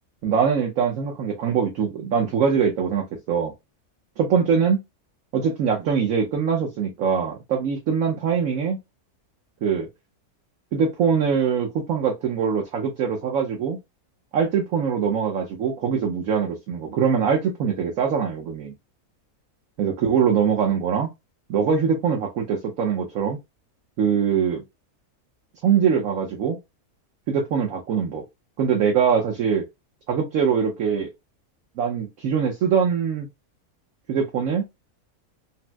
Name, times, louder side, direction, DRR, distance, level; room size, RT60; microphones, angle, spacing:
voice 1, 0.2-3.5 4.2-4.8 5.3-8.8 9.6-9.9 10.7-13.8 14.3-18.7 19.8-21.1 21.5-23.4 24.0-24.6 25.6-26.6 27.3-28.2 28.6-29.6 30.1-31.1 31.8-33.3 34.1-34.6, right 7 dB, 65° right, 1.1 m, -23 dB
4.2 x 2.1 x 2.2 m
omnidirectional pair, 1.6 m